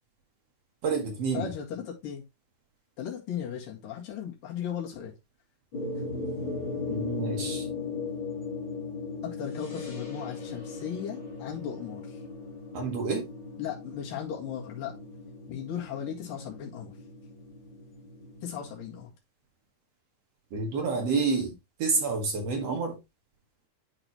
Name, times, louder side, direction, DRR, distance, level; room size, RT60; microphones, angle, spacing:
voice 1, 0.8-1.5 6.9-7.7 12.7-13.3 20.5-21.5 21.8-23.0, right 4 dB, 55° right, 2.2 m, -28 dB
voice 2, 1.3-2.2 3.0-5.1 9.2-12.2 13.6-15.0 15.5-17.0 18.4-19.1, left 9 dB, 80° left, 3.5 m, -36 dB
sound 1, 5.7-19.1, left 4 dB, 40° left, 2.2 m, -38 dB
11.0 x 4.0 x 3.0 m
omnidirectional pair, 3.9 m